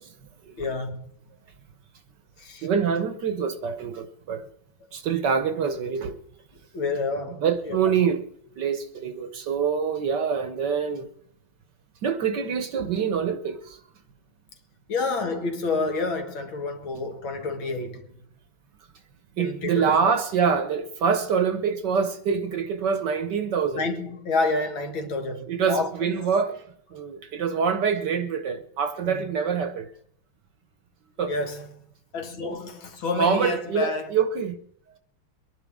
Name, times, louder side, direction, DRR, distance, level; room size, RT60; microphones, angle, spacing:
voice 1, 0.6-1.0 2.4-2.7 6.7-7.8 14.9-18.1 19.4-20.1 23.8-25.9 29.0-29.3 31.3-31.7 32.1-34.1, left 3 dB, 65° left, 2.5 m, -29 dB
voice 2, 2.6-4.4 4.9-6.2 7.4-8.2 8.6-11.1 12.0-13.8 19.4-23.9 25.5-26.6 26.9-29.9 31.2-31.3 33.2-34.6, right 6 dB, 60° right, 1.4 m, -25 dB
23.5 x 11.0 x 3.6 m
omnidirectional pair, 2.4 m